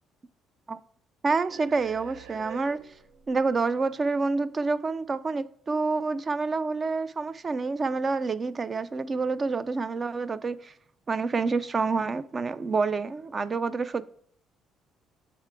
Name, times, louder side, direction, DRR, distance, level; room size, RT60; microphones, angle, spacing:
voice 1, 1.2-2.8 3.3-10.7 11.1-14.0, right 4 dB, 35° right, 0.4 m, -28 dB
sound 1, 1.5-4.6, right 7 dB, 85° right, 0.6 m, -47 dB
6.6 x 3.6 x 4.5 m
supercardioid pair, 80°, 0 cm